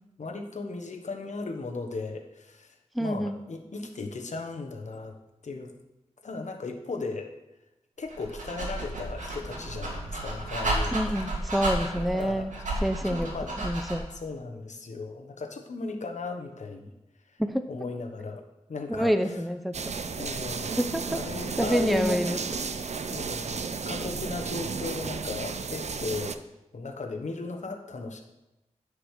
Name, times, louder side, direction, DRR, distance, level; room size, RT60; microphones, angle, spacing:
voice 1, 0.2-2.7 3.0-5.2 5.4-5.7 6.2-7.3 8.0-11.0 12.0-12.5 13.0-13.5 14.1-16.9 17.7-18.4 18.7-19.1 20.2-20.8 21.1-22.2 23.1-26.4 26.7-28.2, left 3 dB, 70° left, 3 dB, 1.2 m, -36 dB
voice 2, 2.9-3.4 10.9-12.5 12.8-13.3 13.6-14.1 17.4-17.7 18.9-19.9 20.8-21.2 21.6-22.4, equal, ahead, 8 dB, 0.7 m, -27 dB
Dog, 8.1-14.2, right 1 dB, 90° right, 2.3 m, -32 dB
sound 1, 19.7-26.4, right 5 dB, 65° right, 0.6 m, -33 dB
9.9 x 5.1 x 6.6 m, 0.97 s
wide cardioid pair, 70°, 12 cm